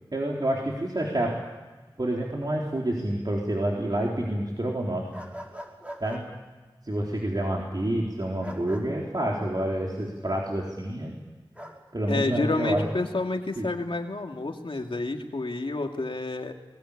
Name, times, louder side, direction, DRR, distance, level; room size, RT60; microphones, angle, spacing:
voice 1, 0.1-1.4 2.0-5.1 6.0-6.3 6.8-11.2 11.9-12.8 13.6-13.7, right 1 dB, 50° right, -2 dB, 4.0 m, -28 dB
sound 1, 5.1-6.2 8.4-8.8 11.5-11.8 12.5-12.9, equal, 15° right, 5.3 m, -41 dB
voice 2, 12.1-16.5, left 2 dB, 85° left, 3 dB, 2.5 m, -29 dB
21.5 x 21.5 x 8.7 m, 1.3 s
wide cardioid pair, 45°, 9 cm